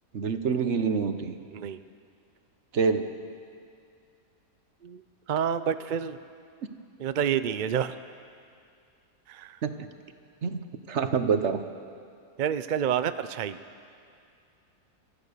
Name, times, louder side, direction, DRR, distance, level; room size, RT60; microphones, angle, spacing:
voice 1, 0.1-1.4 2.7-3.1 9.6-9.9 10.4-10.6 10.9-11.6, right 5 dB, 50° right, 8 dB, 1.2 m, -26 dB
voice 2, 5.3-6.2 7.0-8.0 9.3-9.6 12.4-13.6, right 8 dB, 70° right, 11 dB, 0.4 m, -28 dB
29.5 x 13.5 x 6.7 m, 2.4 s
omnidirectional pair, 1.6 m